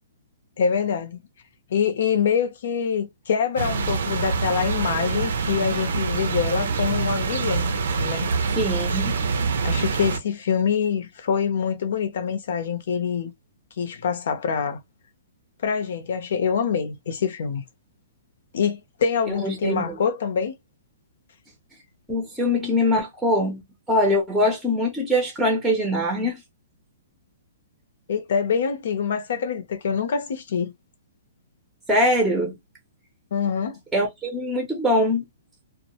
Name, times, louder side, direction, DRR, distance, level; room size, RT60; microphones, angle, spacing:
voice 1, 0.6-1.2 1.7-7.7 8.0-8.3 9.6-13.3 13.8-14.8 15.6-17.6 18.5-20.5 28.1-30.7 33.3-33.8, left 7 dB, 65° left, 0.7 m, -25 dB
sound 1, 3.6-10.2, right 5 dB, 70° right, 0.5 m, -25 dB
voice 2, 8.6-9.2 19.4-20.0 22.1-23.6 23.9-26.4 31.9-32.6 33.9-35.2, left 1 dB, 5° right, 0.7 m, -22 dB
2.1 x 2.1 x 2.9 m
hypercardioid pair, 150°, 0 cm